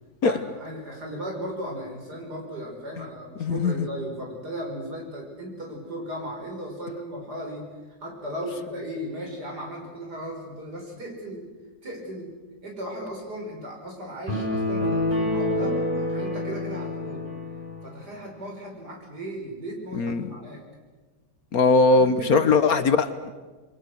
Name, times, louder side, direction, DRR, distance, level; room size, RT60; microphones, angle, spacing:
voice 1, 0.2-7.7 8.0-11.5 11.8-12.3 12.6-17.2 17.8-20.6 21.9-22.7, equal, 65° right, 1 dB, 6.0 m, -36 dB
voice 2, 3.4-3.7 20.0-20.3 21.5-23.3, left 3 dB, 60° left, 11 dB, 1.5 m, -20 dB
sound 1, 14.3-17.8, left 1 dB, 25° right, 7.0 m, -27 dB
27.0 x 23.0 x 6.4 m, 1.3 s
omnidirectional pair, 1.9 m